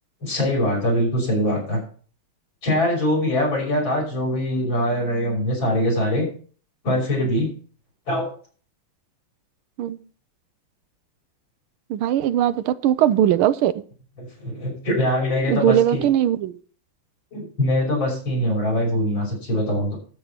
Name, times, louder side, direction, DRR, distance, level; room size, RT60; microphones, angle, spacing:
voice 1, 0.2-1.8 2.6-6.3 6.8-7.5 8.1-8.3 14.2-16.0 17.3-20.0, left 1 dB, 65° left, -2 dB, 6.5 m, -23 dB
voice 2, 11.9-13.8 15.5-16.6, right 11 dB, 80° right, 14 dB, 1.5 m, -20 dB
13.0 x 7.8 x 4.4 m, 0.43 s
omnidirectional pair, 2.3 m